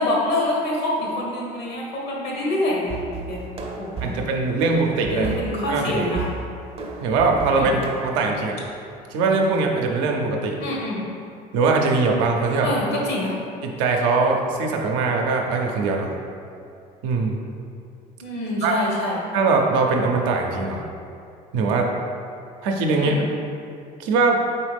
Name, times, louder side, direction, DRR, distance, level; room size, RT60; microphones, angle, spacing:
voice 1, 0.0-2.9 3.3-3.4 3.8-4.2 5.1-6.2 7.5-7.7 10.6-11.0 12.6-13.3 18.2-19.2 22.9-23.2, left 1 dB, 70° left, -3 dB, 1.2 m, -25 dB
sound 1, 2.9-8.1, right 4 dB, 35° right, 0.6 m, -34 dB
voice 2, 4.0-5.3 5.7-6.1 7.0-8.6 9.1-10.6 11.5-12.7 13.6-16.1 17.0-17.4 18.6-18.9 19.3-20.8 21.5-21.9 22.6-23.2 24.0-24.4, right 3 dB, 85° right, 1 dB, 0.6 m, -21 dB
4.3 x 3.2 x 3.4 m, 2.5 s
supercardioid pair, 85°, 18 cm